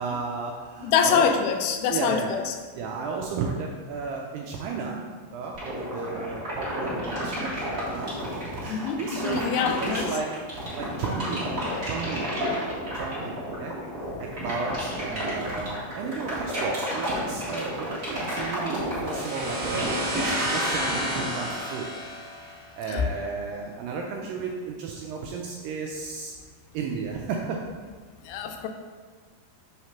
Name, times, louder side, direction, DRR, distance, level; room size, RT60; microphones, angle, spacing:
voice 1, 0.0-1.3 1.9-2.3 2.8-10.3 10.8-11.5 11.8-12.5 12.9-13.7 14.0-21.9 22.4-26.3 26.7-27.7, right 5 dB, 80° right, 0 dB, 2.1 m, -33 dB
voice 2, 0.8-2.5 8.7-10.1 22.9-23.0 28.3-28.7, left 6 dB, 80° left, 5 dB, 2.3 m, -25 dB
sound 1, 5.5-21.5, right 1 dB, 40° right, 1.1 m, -31 dB
sound 2, 19.1-22.8, equal, 55° right, 2.5 m, -31 dB
5.7 x 3.1 x 5.6 m, 1.5 s
omnidirectional pair, 4.4 m